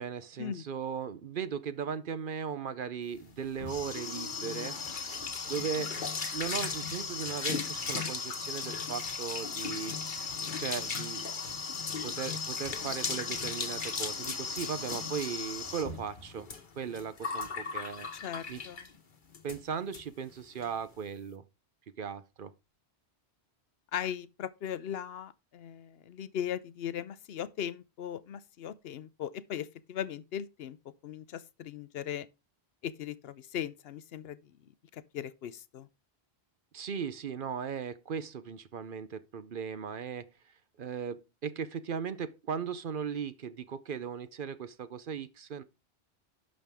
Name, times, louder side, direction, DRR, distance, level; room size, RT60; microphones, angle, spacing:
voice 1, 0.0-4.8 5.5-5.9 6.3-10.0 10.6-11.2 12.0-16.5 16.8-18.1 18.5-18.6 19.4-21.4 22.0-22.5 36.7-40.3 40.8-45.6, right 7 dB, 55° right, 0.8 m, -37 dB
sound 1, 3.2-19.0 19.3-19.6 19.9-20.0 20.3-20.7, left 5 dB, 50° left, 1.3 m, -36 dB
sound 2, 3.7-3.8 4.3-4.9 5.2-5.3 5.5-6.1 6.4-6.9 7.3-7.4 7.7-7.9 8.4-8.5 9.1-9.3 9.6-9.7 10.2-10.9 11.5-11.8, left 3 dB, 15° right, 3.1 m, -55 dB
voice 2, 18.1-18.8 23.9-30.8 31.0-32.3 32.8-34.4 34.9-35.9, left 9 dB, 70° left, 0.8 m, -38 dB
11.0 x 6.5 x 3.5 m
omnidirectional pair, 1.1 m